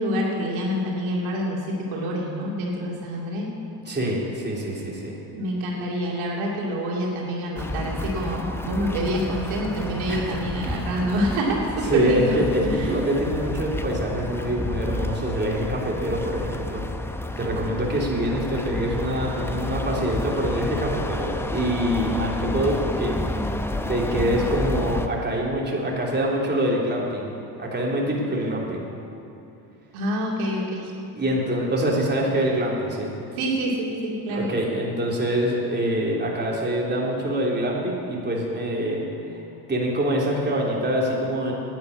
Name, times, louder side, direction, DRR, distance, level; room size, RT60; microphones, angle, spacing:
voice 1, 0.0-3.5 5.3-13.0 29.9-30.9 33.3-34.5, equal, 70° right, -3 dB, 2.7 m, -27 dB
voice 2, 3.8-5.1 10.1-10.3 11.8-16.8 17.4-23.1 23.9-27.3 27.6-28.8 31.1-33.1 34.3-39.0 39.3-39.4 39.7-41.5, equal, 20° right, -3 dB, 3.4 m, -25 dB
sound 1, 7.6-25.1, left 1 dB, 5° left, 0.7 m, -30 dB
10.5 x 9.9 x 8.7 m, 2.7 s
supercardioid pair, 75°, 50 cm